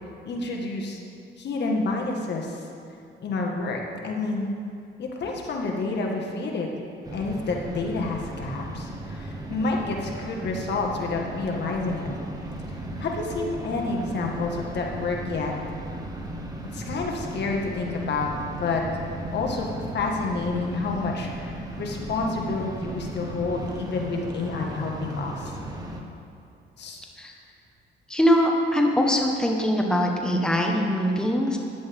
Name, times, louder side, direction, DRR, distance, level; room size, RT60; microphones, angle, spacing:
voice 1, 0.3-1.0 1.4-2.6 3.2-4.5 5.0-6.7 7.1-12.1 13.0-15.5 16.6-18.8 19.3-19.7 19.9-25.5 26.8-27.0, left 3 dB, 60° left, 0 dB, 1.8 m, -29 dB
sound 1, 7.0-26.0, right 1 dB, 20° right, 1.5 m, -36 dB
voice 2, 28.1-31.6, equal, 5° left, 0 dB, 1.4 m, -22 dB
15.0 x 10.5 x 3.7 m, 2.5 s
cardioid pair, 90°, 20 cm